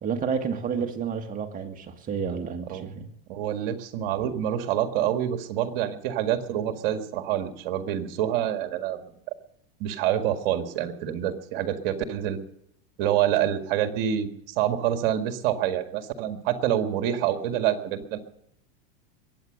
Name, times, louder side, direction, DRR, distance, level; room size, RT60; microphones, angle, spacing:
voice 1, 0.0-3.1, right 6 dB, 30° right, 5 dB, 1.9 m, -30 dB
voice 2, 3.3-9.1 9.8-12.4 13.0-18.2, right 11 dB, 65° right, 8 dB, 1.9 m, -27 dB
22.0 x 8.8 x 6.5 m, 0.78 s
supercardioid pair, 130°, 29 cm